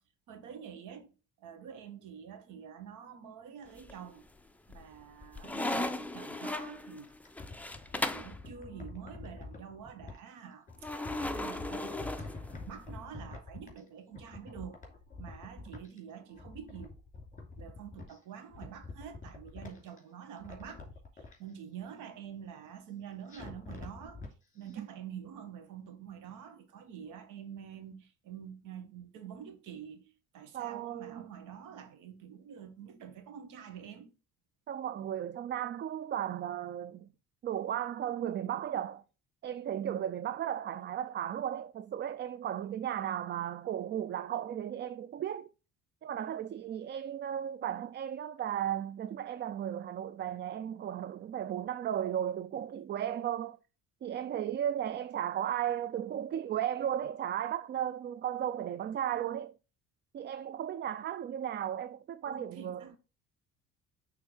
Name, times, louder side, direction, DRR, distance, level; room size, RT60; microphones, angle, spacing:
voice 1, 0.3-1.1 1.4-4.2 4.7-7.1 8.1-12.3 12.7-14.8 15.2-16.9 17.6-20.8 21.1-24.2 24.5-34.1 62.3-63.0, right 8 dB, 75° right, 1.4 m, -47 dB
sound 1, 3.7-4.3 4.7-8.4 10.8-12.9, left 2 dB, 5° left, 0.6 m, -37 dB
sound 2, 7.0-10.2 10.7-13.9 14.1-16.0 16.3-18.2 18.5-20.0 20.4-21.4 23.3-24.3 24.7-24.8, left 3 dB, 25° left, 2.7 m, -46 dB
voice 2, 30.5-31.3 34.7-37.1 37.4-39.0 39.4-45.5 46.0-53.6 54.0-59.5 60.1-62.8, right 10 dB, 35° right, 0.4 m, -35 dB
6.2 x 3.5 x 4.9 m
cardioid pair, 95°, 31 cm